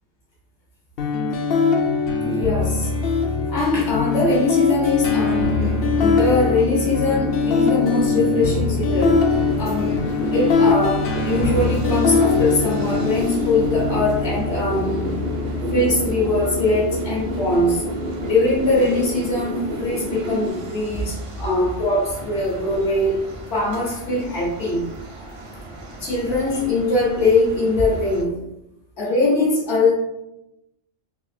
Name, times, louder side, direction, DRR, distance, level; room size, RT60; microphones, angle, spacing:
sound 1, 1.0-18.9, left 4 dB, 65° left, 0.7 m, -22 dB
voice 1, 2.2-2.9 3.5-9.2 9.6-15.2 15.7-17.8 18.2-24.9 25.3-25.4 26.0-28.4 29.0-29.9, left 2 dB, 80° left, -4 dB, 1.3 m, -22 dB
sound 2, 5.3-20.5, equal, 75° right, 1.1 m, -30 dB
sound 3, 9.0-28.2, right 1 dB, 55° right, 0.3 m, -37 dB
4.1 x 2.6 x 2.5 m, 0.87 s
omnidirectional pair, 1.2 m